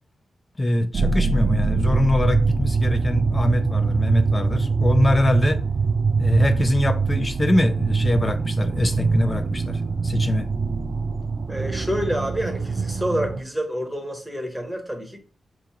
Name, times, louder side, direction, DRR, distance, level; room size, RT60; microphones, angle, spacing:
voice 1, 0.6-5.6 6.2-10.5, left 1 dB, 25° left, 0.5 m, -23 dB
sound 1, 0.9-13.4, right 4 dB, 50° right, 0.3 m, -23 dB
voice 2, 11.5-15.2, equal, 5° right, 1.0 m, -28 dB
3.7 x 3.2 x 3.5 m
wide cardioid pair, 105°, 0 cm